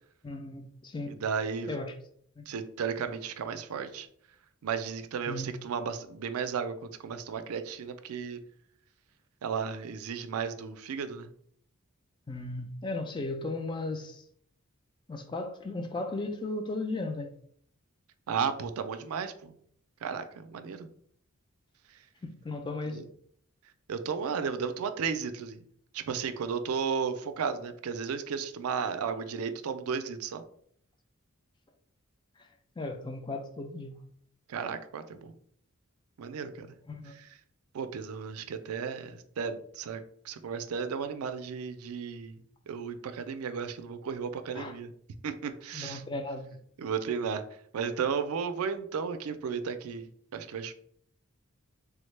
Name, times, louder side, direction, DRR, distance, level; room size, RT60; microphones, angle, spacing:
voice 1, 0.2-1.2 1.7-1.9 2.4-2.5 5.3-5.5 12.3-14.2 15.1-17.3 22.2-23.0 32.8-34.0 36.9-37.2 44.5-44.7 45.7-46.5, left 2 dB, 20° left, 0.4 m, -36 dB
voice 2, 1.1-1.7 2.5-4.1 4.6-8.4 9.4-11.3 18.3-19.5 20.0-20.9 22.9-23.0 23.9-25.6 25.9-30.4 34.5-35.3 36.2-36.7 37.2-37.3 37.7-42.3 42.7-44.9 45.2-46.0 46.8-47.4 47.7-50.7, right 6 dB, 80° right, 0.4 m, -34 dB
3.4 x 2.1 x 3.1 m
head